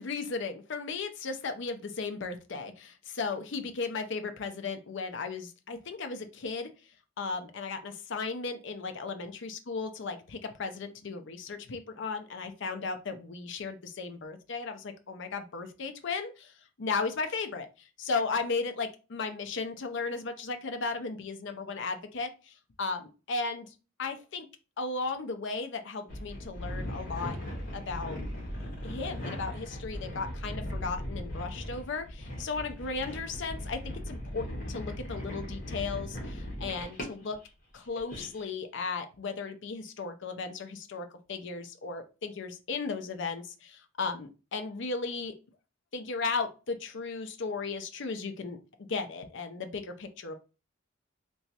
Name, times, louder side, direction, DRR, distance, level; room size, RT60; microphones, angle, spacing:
voice 1, 0.0-6.7 7.2-17.7 18.0-23.7 24.0-24.5 24.8-27.4 27.7-28.2 28.8-37.4 37.7-45.3 45.9-48.6 48.9-50.3, left 4 dB, 65° left, 7 dB, 0.6 m, -35 dB
sound 1, 26.1-37.5 37.9-38.5, equal, 45° left, 1.5 m, -38 dB
3.4 x 3.0 x 2.8 m, 0.32 s
head